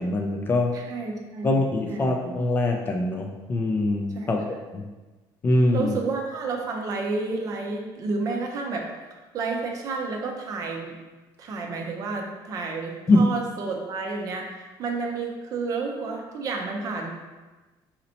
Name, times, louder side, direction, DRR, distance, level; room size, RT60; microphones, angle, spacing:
voice 1, 0.0-0.7 1.4-4.4 4.7-4.8 5.4-5.9 13.1-13.2, left 2 dB, 25° left, 2 dB, 0.3 m, -23 dB
voice 2, 0.7-2.1 4.1-4.4 5.7-8.9 9.3-10.9 11.4-17.2, right 4 dB, 40° right, 2 dB, 0.6 m, -31 dB
4.2 x 4.0 x 2.8 m, 1.2 s
cardioid pair, 170°, 9 cm